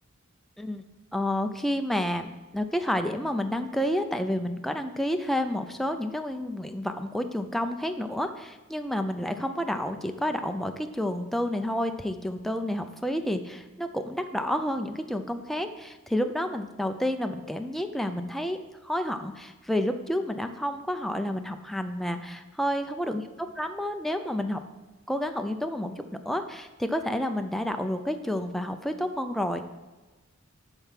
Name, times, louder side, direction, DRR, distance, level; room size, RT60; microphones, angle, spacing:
voice 1, 1.1-23.3 23.6-24.6 25.1-29.7, left 1 dB, ahead, 6 dB, 0.4 m, -30 dB
10.5 x 4.6 x 5.8 m, 1.2 s
head